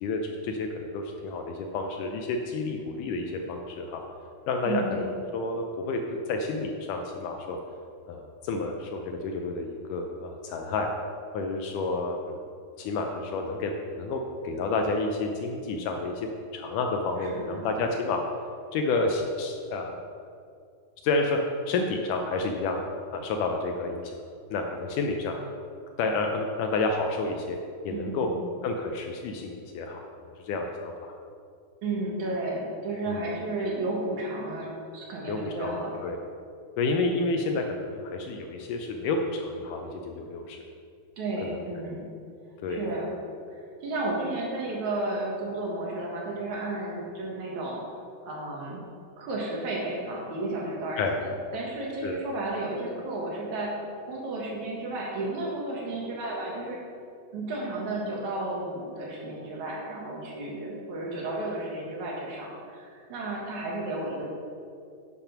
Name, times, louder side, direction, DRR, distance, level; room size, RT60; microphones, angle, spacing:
voice 1, 0.0-4.0 4.5-6.0 6.3-7.6 8.1-10.9 11.3-12.4 12.8-18.2 18.7-20.0 21.0-21.4 21.7-24.2 24.5-25.3 26.0-27.6 27.8-28.3 28.6-30.1 30.4-31.1 33.1-33.2 35.3-35.8 36.0-36.2 36.8-40.6 41.4-41.6 42.6-42.9 51.0-51.2 52.0-52.2, left 3 dB, 75° left, 3 dB, 2.0 m, -30 dB
voice 2, 4.6-5.1 17.2-17.7 27.9-28.4 31.8-35.9 41.2-42.1 42.7-43.1 43.5-47.8 48.3-48.8 49.2-53.7 54.0-56.8 57.3-64.2, right 2 dB, 60° right, -3 dB, 2.6 m, -33 dB
10.0 x 6.1 x 5.9 m, 2.4 s
omnidirectional pair, 4.1 m